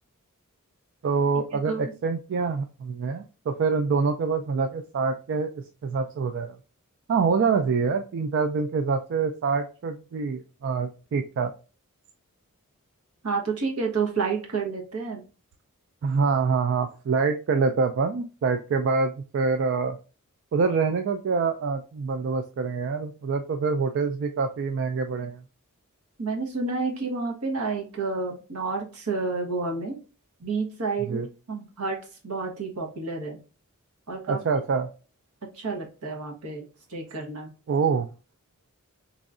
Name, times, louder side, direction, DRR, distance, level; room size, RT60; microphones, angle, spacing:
voice 1, 1.0-6.6 7.1-11.5 16.0-20.0 20.5-25.4 31.0-31.3 34.3-34.9 37.7-38.1, right 5 dB, 55° right, 7 dB, 0.3 m, -26 dB
voice 2, 13.2-15.2 26.2-30.0 30.4-31.2 31.5-32.0 32.2-33.4 34.1-34.4 35.6-36.6 36.9-37.5, right 4 dB, 80° right, 1 dB, 1.1 m, -29 dB
3.6 x 3.1 x 2.5 m, 0.34 s
head